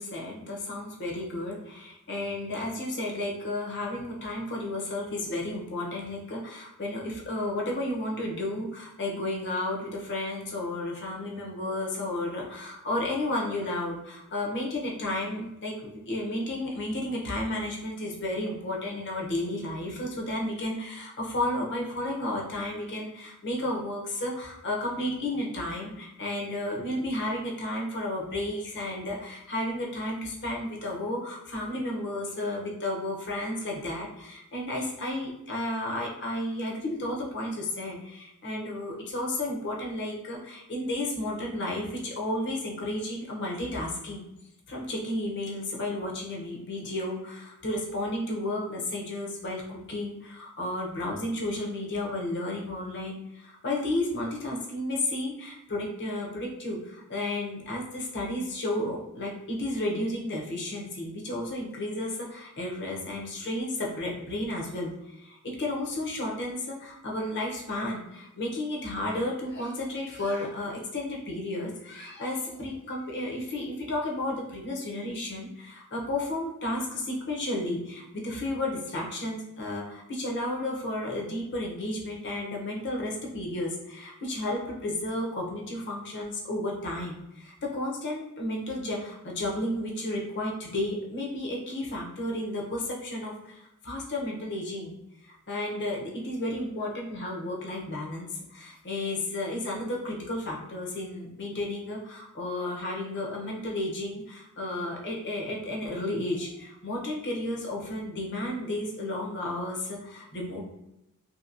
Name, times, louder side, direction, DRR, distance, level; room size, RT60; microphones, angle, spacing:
voice 1, 0.0-44.3 44.7-94.9 95.2-110.6, left 1 dB, 50° left, -2 dB, 0.8 m, -32 dB
2.8 x 2.7 x 2.6 m, 0.88 s
head